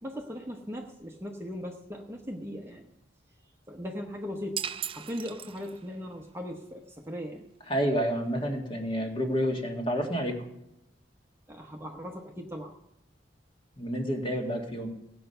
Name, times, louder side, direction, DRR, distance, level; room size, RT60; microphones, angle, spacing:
voice 1, 0.0-2.9 3.7-4.6 4.9-7.5 11.5-12.7, equal, 15° right, 1 dB, 1.0 m, -38 dB
sound 1, 4.6-6.0, right 9 dB, 30° right, 0.4 m, -37 dB
voice 2, 7.7-10.4 13.8-14.9, equal, 30° left, 2 dB, 1.9 m, -29 dB
17.5 x 8.0 x 5.6 m, 0.86 s
head